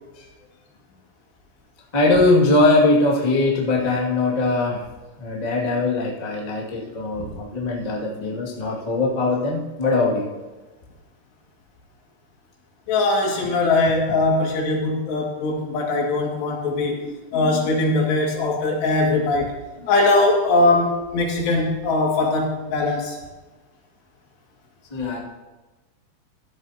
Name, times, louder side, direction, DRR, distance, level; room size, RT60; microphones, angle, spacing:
voice 1, 1.9-4.8 5.2-10.3 19.8-19.9 24.9-25.2, left 2 dB, 30° left, -4 dB, 0.7 m, -21 dB
voice 2, 12.9-19.5 19.9-23.2, left 2 dB, 80° left, -1 dB, 4.3 m, -21 dB
15.5 x 12.0 x 2.8 m, 1.2 s
omnidirectional pair, 4.8 m